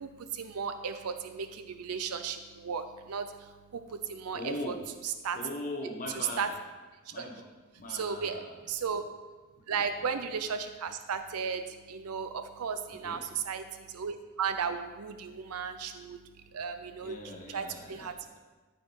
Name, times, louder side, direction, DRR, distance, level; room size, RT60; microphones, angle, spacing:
voice 1, 0.0-4.7 5.0-5.4 6.1-6.5 7.0-7.2 7.9-8.4 8.7-9.0 9.7-17.2 17.5-18.2, right 6 dB, 90° right, 9 dB, 0.5 m, -35 dB
voice 2, 4.3-4.8 5.3-6.5 7.1-7.4 7.8-8.6 9.7-9.8 13.0-13.2 15.3-15.4 17.0-18.4, left 1 dB, 35° left, -1 dB, 1.4 m, -40 dB
12.5 x 4.5 x 4.7 m, 1.3 s
head